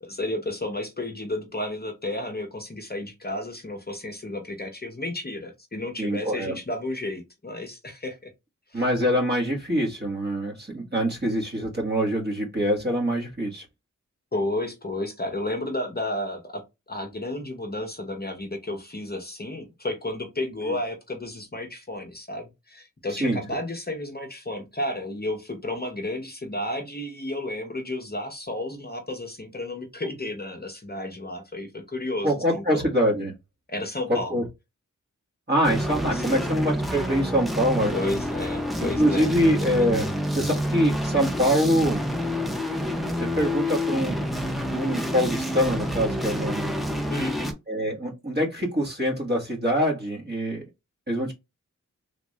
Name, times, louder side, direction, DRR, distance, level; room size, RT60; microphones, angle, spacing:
voice 1, 0.0-8.3 8.7-8.9 14.3-32.8 33.7-34.4 36.1-36.5 37.9-39.4 47.1-47.5, left 1 dB, 30° left, 0.8 m, -32 dB
voice 2, 6.0-6.6 8.7-13.6 23.2-23.4 32.2-33.3 34.1-34.4 35.5-37.9 38.8-40.0 40.3-42.0 43.2-44.2 44.7-46.7 47.7-50.6 51.1-51.3, equal, 30° right, 1.5 m, -24 dB
sound 1, 35.6-47.5, equal, ahead, 0.6 m, -28 dB
3.5 x 2.5 x 3.2 m
wide cardioid pair, 80°, 31 cm